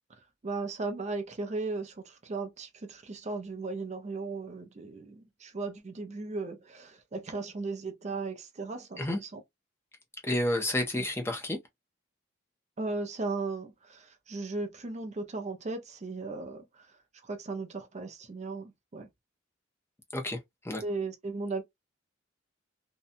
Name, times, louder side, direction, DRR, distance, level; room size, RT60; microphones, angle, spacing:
voice 1, 0.1-9.4 11.0-11.1 12.8-19.1 20.8-21.6, right 3 dB, 35° right, 0.5 m, -37 dB
voice 2, 10.2-11.6 20.1-20.4 20.6-20.8, left 1 dB, 15° left, 0.5 m, -30 dB
2.7 x 2.2 x 2.5 m
head